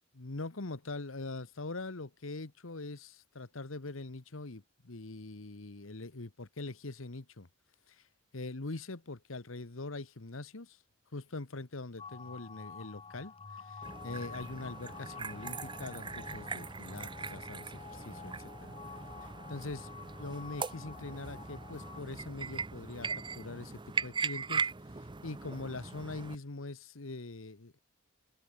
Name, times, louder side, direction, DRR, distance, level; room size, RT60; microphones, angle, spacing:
voice 1, 0.1-7.5 7.9-8.1 8.3-10.8 11.1-18.3 18.6-18.7 19.2-19.9 20.2-24.7 25.0-27.8, left 2 dB, 85° left, 1.4 m, -43 dB
sound 1, 12.0-22.0, left 5 dB, 30° left, 0.6 m, -49 dB
sound 2, 13.8-26.4, right 4 dB, 25° right, 0.8 m, -40 dB
head